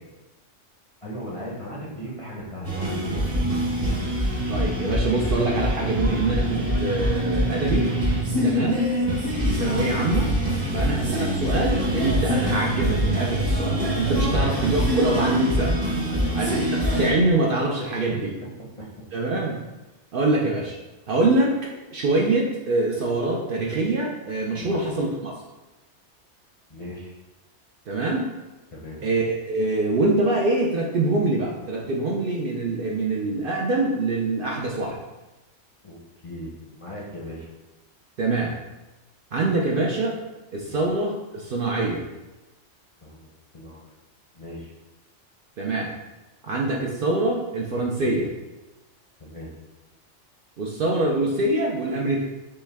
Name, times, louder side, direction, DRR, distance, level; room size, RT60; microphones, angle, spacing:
voice 1, 1.0-3.3 10.7-10.9 14.2-14.5 16.0-16.7 18.1-18.2 24.5-24.7 26.7-27.1 28.7-29.0 35.8-37.5 40.6-40.8 43.0-43.9 44.3-44.7 49.2-49.5, equal, 35° left, -6 dB, 0.6 m, -38 dB
sound 1, 2.6-17.1, equal, 35° right, 0.8 m, -24 dB
voice 2, 4.5-7.9 8.4-8.8 9.4-10.3 10.7-15.8 16.4-16.6 17.0-18.3 19.1-19.6 20.1-20.8 21.1-25.3 27.9-28.3 29.0-35.0 38.2-38.5 39.3-40.2 40.5-42.0 45.6-45.9 46.4-48.3 50.6-52.2, right 2 dB, 60° right, -2 dB, 0.6 m, -24 dB
5.3 x 2.2 x 3.3 m, 1.1 s
omnidirectional pair, 1.2 m